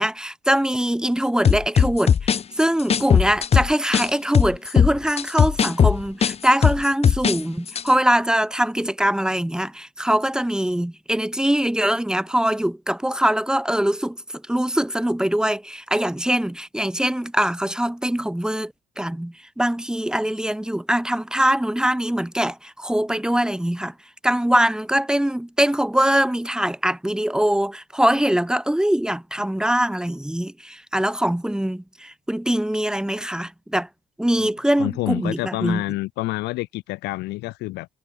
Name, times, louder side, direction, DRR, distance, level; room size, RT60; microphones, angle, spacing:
voice 1, 0.0-14.2 14.5-18.7 19.0-23.9 24.2-33.9 34.2-35.8, right 1 dB, 5° right, 2.5 m, -22 dB
sound 1, 1.4-4.1 4.3-7.4 7.7-7.9, left 7 dB, 35° left, 1.3 m, -18 dB
voice 2, 34.8-37.9, left 20 dB, 90° left, 7.8 m, -28 dB
cardioid pair, 110°, 17 cm